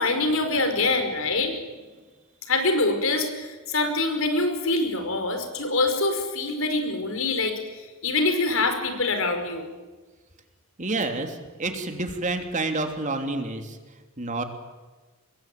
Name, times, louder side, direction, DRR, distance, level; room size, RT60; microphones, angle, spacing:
voice 1, 0.0-1.5 2.5-9.7, left 2 dB, 75° left, 6 dB, 5.2 m, -25 dB
voice 2, 10.8-13.8 14.2-14.4, right 2 dB, 35° right, 5 dB, 3.1 m, -29 dB
26.0 x 22.0 x 9.3 m, 1.3 s
head